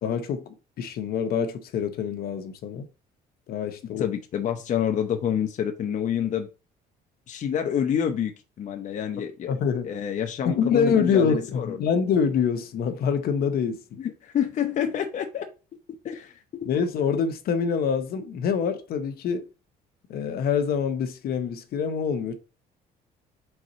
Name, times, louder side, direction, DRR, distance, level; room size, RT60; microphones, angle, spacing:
voice 1, 0.0-2.9 3.5-4.1 9.5-9.9 10.4-13.8 16.6-19.5 20.1-22.3, left 6 dB, 65° left, 1.1 m, -25 dB
voice 2, 4.0-6.5 7.3-8.3 8.6-9.5 9.8-11.8 14.0-15.5 16.0-16.7, left 9 dB, 45° left, 0.8 m, -28 dB
4.7 x 3.8 x 5.5 m
cardioid pair, 110°, 17 cm